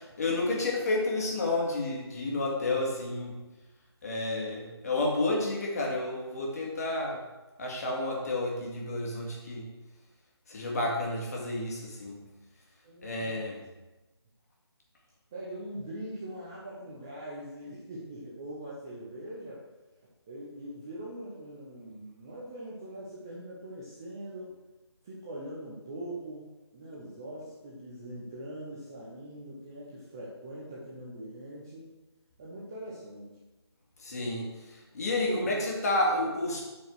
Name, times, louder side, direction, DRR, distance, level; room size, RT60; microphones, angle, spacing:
voice 1, 0.0-3.4 4.0-7.2 7.6-9.7 10.5-12.2 13.0-13.6 34.0-36.7, left 2 dB, 35° left, -2 dB, 2.1 m, -30 dB
voice 2, 12.8-13.7 15.3-19.6 20.3-24.5 25.0-31.9 32.4-33.3 35.2-35.6, right 1 dB, 10° right, -6 dB, 0.4 m, -42 dB
8.3 x 4.6 x 6.1 m, 1.1 s
figure-of-eight pair, 160°, 14 cm